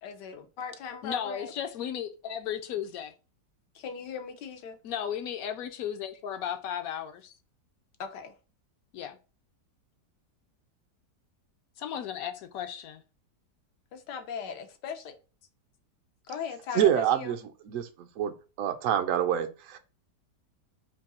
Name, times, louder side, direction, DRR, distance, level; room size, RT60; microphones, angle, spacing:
voice 1, 0.0-1.5 3.7-4.8 8.0-8.3 13.9-15.1 16.3-17.4, left 6 dB, 90° left, 1.4 m, -38 dB
voice 2, 1.0-3.1 4.8-7.3 8.9-9.2 11.8-13.0, left 9 dB, 70° left, 0.9 m, -35 dB
voice 3, 16.7-17.4 17.7-19.8, right 10 dB, 70° right, 0.8 m, -27 dB
3.6 x 2.7 x 4.0 m
omnidirectional pair, 1.8 m